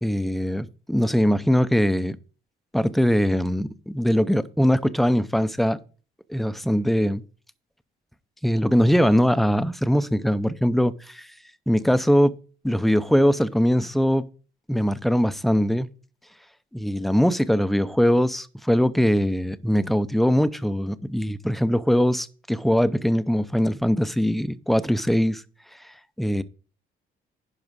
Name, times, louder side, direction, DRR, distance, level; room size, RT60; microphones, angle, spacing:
voice 1, 0.0-2.2 2.7-5.8 6.3-7.2 8.4-11.3 11.7-12.4 12.6-14.2 14.7-15.9 16.7-25.4 26.2-26.4, equal, ahead, 0.5 m, -21 dB
11.0 x 4.9 x 4.7 m
cardioid pair, 90°, 20 cm